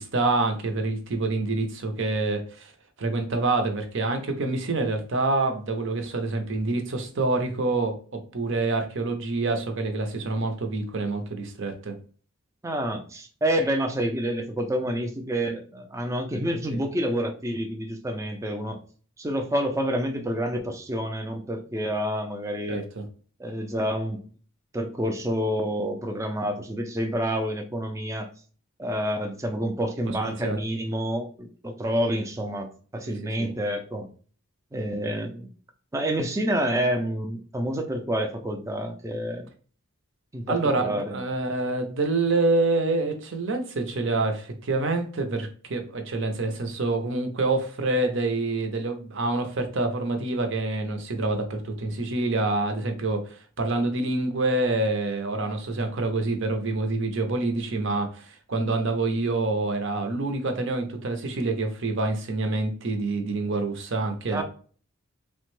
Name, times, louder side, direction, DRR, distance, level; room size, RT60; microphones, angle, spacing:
voice 1, 0.0-2.7 3.0-12.0 16.7-16.8 22.7-23.0 30.4-30.6 33.1-33.5 40.5-64.4, right 2 dB, 55° right, 5 dB, 0.6 m, -27 dB
voice 2, 12.6-18.8 19.2-22.8 23.4-24.2 24.7-28.3 28.8-34.1 34.7-35.5 35.9-39.5 40.3-41.2 64.3-64.4, equal, 15° right, 5 dB, 0.4 m, -28 dB
3.4 x 2.1 x 3.1 m, 0.42 s
head